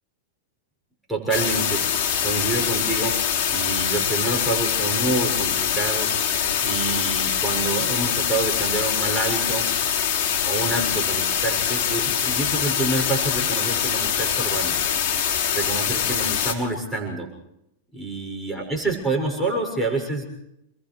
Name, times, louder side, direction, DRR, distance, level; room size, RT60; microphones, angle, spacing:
voice 1, 1.1-2.0 2.2-6.3 6.6-9.7 10.4-14.7 15.5-17.3 17.9-20.2, right 2 dB, 5° right, -1 dB, 6.6 m, -27 dB
sound 1, 1.3-16.5, left 8 dB, 45° left, 6.2 m, -24 dB
29.0 x 21.5 x 4.8 m, 0.80 s
hypercardioid pair, 115°, 0 cm